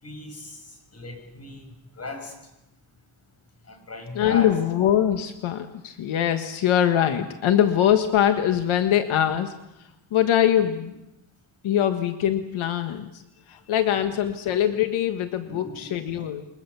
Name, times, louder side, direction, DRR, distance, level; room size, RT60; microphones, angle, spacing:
voice 1, 0.0-1.6 1.9-2.3 3.7-4.5 10.6-10.7 15.5-15.9 16.2-16.3, left 3 dB, 30° left, 5 dB, 6.4 m, -37 dB
voice 2, 4.1-10.9 11.6-13.2 13.5-16.4, left 10 dB, 80° left, 7 dB, 1.6 m, -23 dB
29.5 x 22.5 x 7.0 m, 0.90 s
cardioid pair, 125°, 48 cm